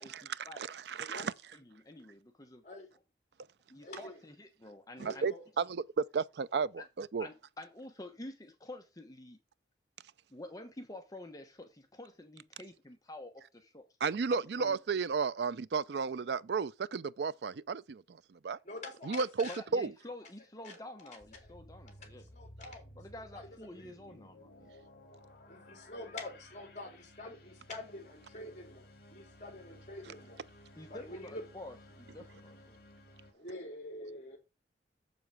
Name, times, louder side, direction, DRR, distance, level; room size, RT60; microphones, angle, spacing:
voice 1, 0.0-0.6 1.0-1.1 1.5-2.6 3.7-5.3 6.8-6.9 7.2-9.4 10.3-13.9 14.3-14.8 19.5-22.3 23.0-24.5 30.8-32.8, left 1 dB, 20° left, 1.1 m, -49 dB
voice 2, 0.6-1.3 5.0-7.3 14.0-18.0 18.3-18.6 19.1-19.9, right 5 dB, 70° right, 0.4 m, -33 dB
voice 3, 3.8-4.2 5.0-5.4 18.6-19.6 20.6-21.6 21.8-23.9 25.5-30.4 30.9-31.4 33.3-34.4, left 2 dB, 40° left, 3.7 m, -47 dB
sound 1, 21.2-33.3, equal, 60° left, 3.0 m, -56 dB
7.5 x 7.0 x 4.7 m
head